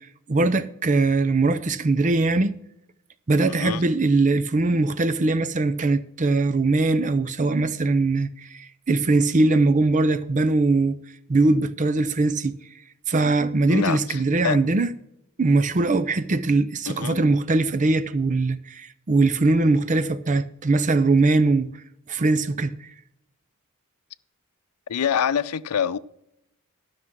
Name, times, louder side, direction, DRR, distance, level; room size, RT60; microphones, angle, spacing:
voice 1, 0.3-2.5 3.3-11.0 11.3-12.6 13.1-14.9 15.4-21.7 22.1-22.7, right 3 dB, 35° right, 0.5 m, -21 dB
voice 2, 3.5-3.8 13.7-14.6 16.9-17.2 24.9-26.0, left 8 dB, 90° left, 0.5 m, -26 dB
12.5 x 6.1 x 6.0 m
head